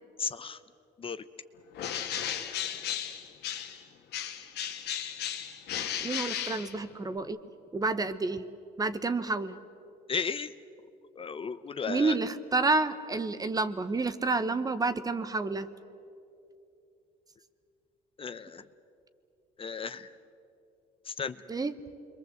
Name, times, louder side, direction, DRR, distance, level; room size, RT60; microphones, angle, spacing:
voice 1, 0.2-0.6 1.0-1.2 10.1-10.5 11.2-12.2 18.2-18.7 19.6-20.1 21.1-21.4, left 5 dB, 30° left, 12 dB, 0.8 m, -34 dB
Bird, 1.7-3.8 4.1-7.2, left 9 dB, 75° left, 1.9 m, -35 dB
voice 2, 6.0-7.4 7.7-8.4 8.8-9.6 11.9-15.7 21.5-21.7, right 3 dB, 20° right, 12 dB, 1.1 m, -29 dB
28.0 x 22.5 x 8.0 m, 2.7 s
cardioid pair, 110°, 17 cm